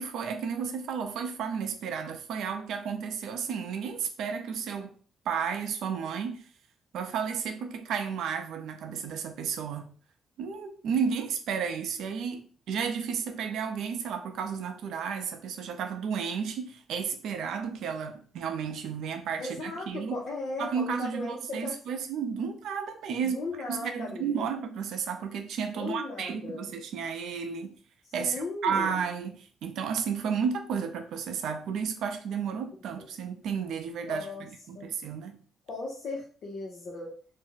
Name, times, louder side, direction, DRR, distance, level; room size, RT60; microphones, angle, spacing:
voice 1, 0.0-5.0 5.3-6.5 6.9-9.9 10.4-12.4 12.7-20.2 20.6-23.4 23.7-27.8 28.1-35.4, right 6 dB, 75° right, 0.5 m, -32 dB
voice 2, 19.4-21.8 23.2-24.5 25.7-26.7 28.2-29.0 34.1-34.5 34.7-34.9 35.7-37.2, left 3 dB, 60° left, 0.6 m, -37 dB
2.5 x 2.0 x 3.8 m
cardioid pair, 90°, 0 cm